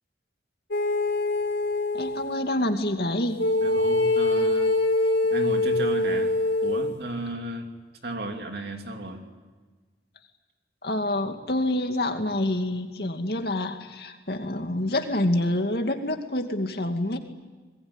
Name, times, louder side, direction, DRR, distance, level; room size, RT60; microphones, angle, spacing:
sound 1, 0.7-2.4 3.4-7.0, left 2 dB, 85° left, 2.6 m, -24 dB
voice 1, 1.9-3.4 10.8-17.2, left 1 dB, 60° left, 5 dB, 2.4 m, -27 dB
voice 2, 3.6-4.8 5.3-6.3 6.6-7.8 8.0-9.3, right 1 dB, 60° right, 3 dB, 3.1 m, -34 dB
25.5 x 21.5 x 9.9 m, 1.4 s
head